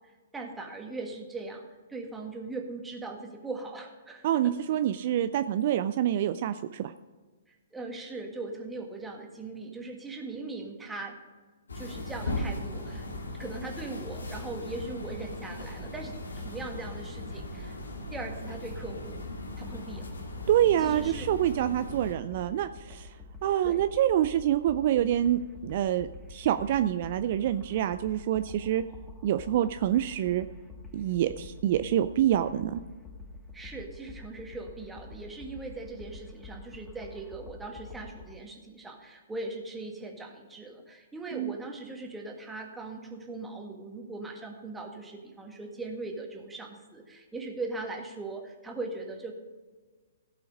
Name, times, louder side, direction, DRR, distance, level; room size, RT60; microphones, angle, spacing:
voice 1, 0.3-1.6 1.9-4.5 7.5-11.2 11.7-13.1 13.4-17.8 18.1-19.2 19.6-20.0 20.8-21.2 23.6-23.8 33.5-49.3, right 3 dB, 10° right, 2 dB, 1.7 m, -40 dB
voice 2, 4.2-6.9 20.5-23.1 23.4-28.8 29.2-30.5 30.9-32.8 41.3-41.6, right 11 dB, 50° right, 11 dB, 0.4 m, -26 dB
sound 1, 11.7-22.1, left 1 dB, 80° left, 2.0 m, -38 dB
sound 2, 19.5-38.3, left 3 dB, 10° left, 1.5 m, -47 dB
16.5 x 5.7 x 5.3 m, 1.4 s
figure-of-eight pair, 125°, 0 cm